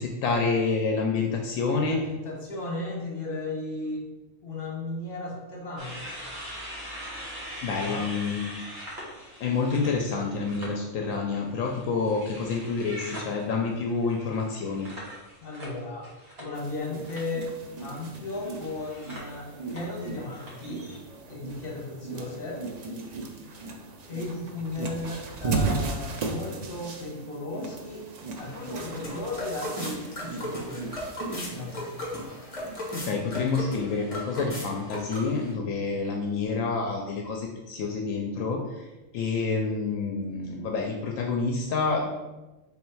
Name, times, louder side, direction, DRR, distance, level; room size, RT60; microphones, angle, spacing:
voice 1, 0.0-2.0 7.6-8.6 9.4-14.9 32.9-38.9 39.1-42.1, left 4 dB, 80° left, 1 dB, 1.0 m, -28 dB
voice 2, 1.8-4.0 4.4-6.0 7.7-8.1 15.4-16.1 16.4-17.5 17.8-20.9 21.3-22.6 24.1-28.0 28.4-30.9 31.4-32.1, left 2 dB, 45° left, -2 dB, 1.3 m, -35 dB
sound 1, 5.8-10.7 11.1-16.8 17.0-17.4 18.3-21.0, equal, 50° right, 1.4 m, -42 dB
sound 2, 16.5-33.0, right 3 dB, 80° right, 0.3 m, -36 dB
sound 3, 28.4-35.5, left 1 dB, 30° left, 1.0 m, -37 dB
3.7 x 3.1 x 4.5 m, 1.1 s
omnidirectional pair, 1.4 m